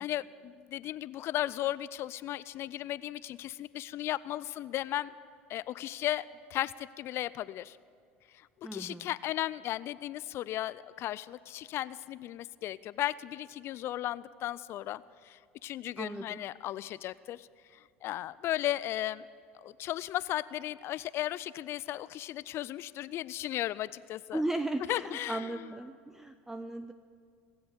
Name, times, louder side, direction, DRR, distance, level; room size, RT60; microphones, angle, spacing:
voice 1, 0.0-5.1 5.5-7.8 8.3-8.5 8.7-17.5 17.7-19.3 19.5-24.4 24.9-25.5, left 13 dB, 45° left, 18 dB, 0.3 m, -35 dB
voice 2, 8.6-9.1 16.0-16.4 24.3-26.9, right 1 dB, 5° right, 10 dB, 0.5 m, -36 dB
19.5 x 7.8 x 8.3 m, 2.3 s
hypercardioid pair, 75°, 6 cm